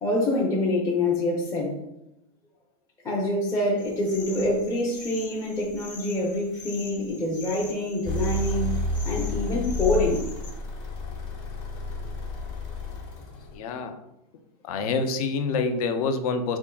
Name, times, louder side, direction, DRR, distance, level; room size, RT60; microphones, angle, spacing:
voice 1, 0.0-1.8 3.0-8.7 9.0-10.2, left 1 dB, 15° left, -5 dB, 0.6 m, -26 dB
sound 1, 3.8-10.5, left 4 dB, 85° left, 1.2 m, -44 dB
sound 2, 8.0-13.6, left 3 dB, 45° left, 1.1 m, -30 dB
voice 2, 13.5-14.0 14.6-16.6, left 4 dB, 60° left, 7 dB, 0.5 m, -27 dB
3.6 x 3.4 x 2.2 m, 0.85 s
supercardioid pair, 135°, 21 cm